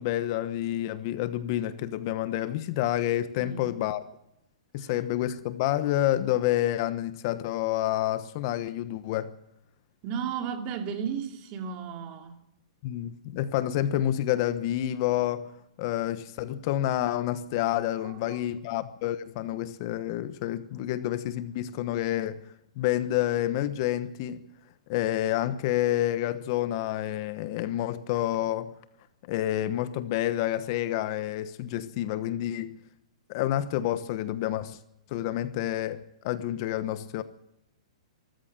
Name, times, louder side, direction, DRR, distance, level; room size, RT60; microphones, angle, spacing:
voice 1, 0.0-4.1 4.7-9.3 12.8-15.5 15.8-22.4 22.8-24.4 24.9-28.7 29.3-32.8 33.3-34.8 35.1-37.2, left 13 dB, 40° left, 1.1 m, -28 dB
voice 2, 10.0-12.3 18.3-18.4, right 7 dB, 30° right, 2.8 m, -34 dB
24.0 x 14.5 x 7.5 m
hypercardioid pair, 155°, 3 cm